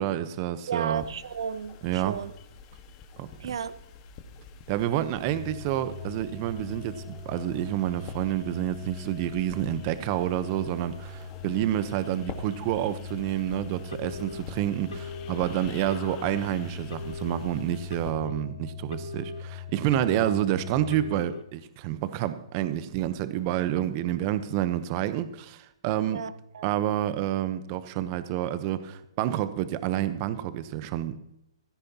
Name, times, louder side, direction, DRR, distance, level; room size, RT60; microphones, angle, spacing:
voice 1, 0.0-1.0 1.8-2.2 3.2-3.3 4.7-26.2 26.6-31.2, right 12 dB, 35° right, 0.9 m, -29 dB
voice 2, 0.7-2.3 3.4-3.8 20.1-20.3 26.1-26.7, right 7 dB, 70° right, 0.7 m, -34 dB
sound 1, 0.9-18.1, left 5 dB, 30° left, 1.6 m, -47 dB
sound 2, 5.1-21.2, left 4 dB, ahead, 3.1 m, -41 dB
Telephone, 13.9-14.4 14.9-15.4 15.9-16.4 16.9-17.4 17.9-18.4 18.9-19.4 19.9-20.4 20.9-21.4, left 4 dB, 80° left, 0.4 m, -40 dB
16.0 x 13.5 x 3.0 m
hypercardioid pair, 140°, 3 cm